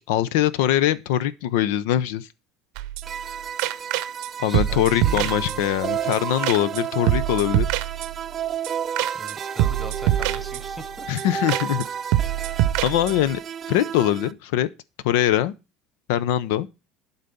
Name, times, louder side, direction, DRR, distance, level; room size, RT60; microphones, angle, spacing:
voice 1, 0.1-2.3 4.4-7.7 11.1-11.8 12.8-13.4 13.7-14.7 15.0-15.5 16.1-16.7, left 12 dB, 85° left, 0.7 m, -22 dB
sound 1, 2.8-3.3 3.6-4.3 4.5-5.8 6.1-6.2 6.4-6.8 7.1-8.4 8.6-8.7 9.0-9.3 9.6-10.9 11.2-11.3 11.5-11.9 12.1-13.4, right 14 dB, 65° right, 0.7 m, -24 dB
sound 2, 3.0-14.3, right 8 dB, 25° right, 0.6 m, -32 dB
voice 2, 4.4-5.7 9.1-11.1, right 2 dB, 5° right, 1.1 m, -40 dB
11.5 x 4.0 x 6.9 m
cardioid pair, 175°, 0 cm